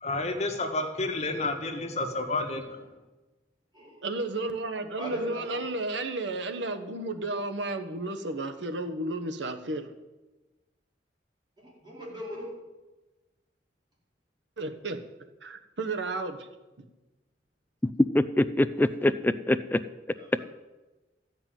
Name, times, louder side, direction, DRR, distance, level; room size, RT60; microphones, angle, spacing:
voice 1, 0.0-2.8, left 2 dB, 40° left, 4 dB, 1.6 m, -30 dB
voice 2, 4.0-9.9 14.6-15.0 15.4-16.5, right 2 dB, 80° right, 7 dB, 1.2 m, -33 dB
voice 3, 5.0-5.7 11.6-12.5 20.1-20.4, equal, 25° right, -5 dB, 4.8 m, -39 dB
voice 4, 18.1-19.8, left 1 dB, 10° left, 13 dB, 0.4 m, -24 dB
13.5 x 5.9 x 9.2 m, 1.1 s
head